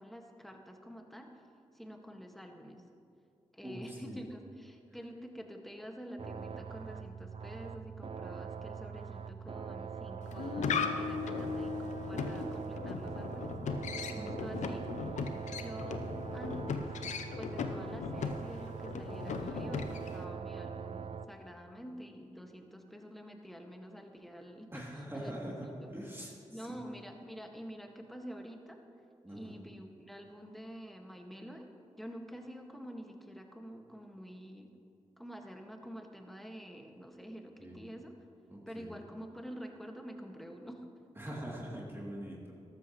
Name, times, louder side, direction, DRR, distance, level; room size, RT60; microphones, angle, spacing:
voice 1, 0.0-1.4 1.7-2.8 3.5-13.5 14.1-16.9 17.4-25.9 26.5-28.8 29.3-31.7 32.0-34.7 35.2-38.1 38.6-40.9, equal, ahead, 3 dB, 1.6 m, -48 dB
sound 1, 6.2-21.3, right 6 dB, 50° right, 0.6 m, -43 dB
sound 2, 10.2-20.2, left 5 dB, 85° left, 0.7 m, -37 dB
voice 2, 24.7-26.3 26.7-26.8 29.2-29.5 37.6-37.8 38.5-38.9 41.2-42.5, right 1 dB, 20° right, -4 dB, 2.7 m, -43 dB
13.5 x 12.5 x 3.1 m, 2.5 s
supercardioid pair, 40°, 12 cm